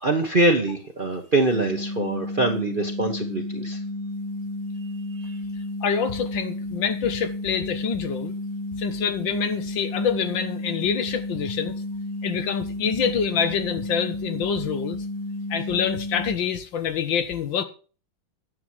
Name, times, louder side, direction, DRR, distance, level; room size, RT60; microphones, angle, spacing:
voice 1, 0.0-3.8 5.1-5.4, right 2 dB, 30° right, 1.2 m, -24 dB
sound 1, 1.5-16.3, left 1 dB, 55° right, 1.2 m, -32 dB
voice 2, 5.8-8.3 8.8-11.7 12.2-15.0 15.5-17.6, left 7 dB, 75° left, 1.9 m, -26 dB
10.5 x 7.4 x 6.3 m
omnidirectional pair, 2.1 m